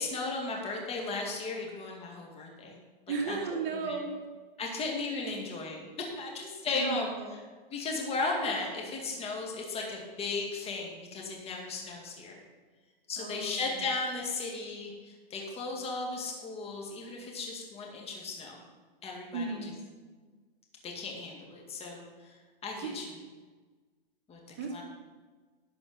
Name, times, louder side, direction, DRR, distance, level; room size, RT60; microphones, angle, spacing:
voice 1, 0.0-2.8 3.3-3.4 3.7-4.0 4.6-7.1 7.7-12.4 13.1-18.6 19.0-19.7 20.8-22.3 22.6-23.1 24.3-24.4 24.7-24.8, left 3 dB, 20° left, 0 dB, 2.2 m, -36 dB
voice 2, 3.1-4.2 6.7-7.4 13.2-13.8 19.3-19.8 22.8-23.0 24.6-24.8, right 4 dB, 35° right, 1 dB, 2.3 m, -35 dB
11.5 x 5.0 x 7.2 m, 1.4 s
hypercardioid pair, 135°, 29 cm